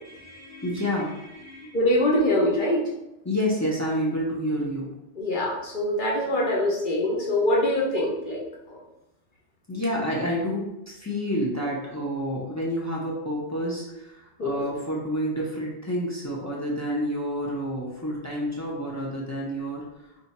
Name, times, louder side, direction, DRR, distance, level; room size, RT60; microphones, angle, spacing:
voice 1, 0.0-1.8 3.2-4.9 9.7-19.9, equal, 20° left, -4 dB, 0.5 m, -29 dB
voice 2, 1.7-2.8 5.2-8.4 8.7-8.8 14.4-14.7, left 1 dB, 50° left, -3 dB, 0.8 m, -24 dB
2.7 x 2.4 x 4.1 m, 0.90 s
omnidirectional pair, 1.1 m